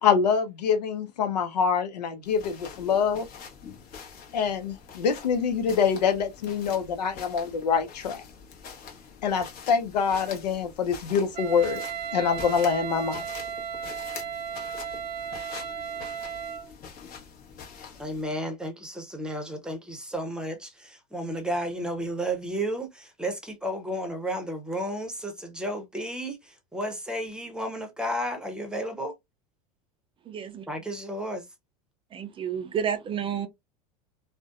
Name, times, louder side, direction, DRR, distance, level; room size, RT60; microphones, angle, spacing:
voice 1, 0.0-3.3 4.3-8.2 9.2-11.8 12.1-13.2, left 6 dB, 90° left, 0.5 m, -25 dB
sound 1, 2.2-18.2, left 6 dB, 45° left, 0.9 m, -45 dB
Wind instrument woodwind instrument, 11.3-16.7, right 8 dB, 85° right, 0.4 m, -35 dB
voice 2, 18.0-29.1 30.7-31.4, right 1 dB, 5° right, 0.7 m, -32 dB
voice 3, 30.3-30.6 32.1-33.5, right 8 dB, 25° right, 0.4 m, -30 dB
2.5 x 2.1 x 2.3 m
hypercardioid pair, 95°, 21 cm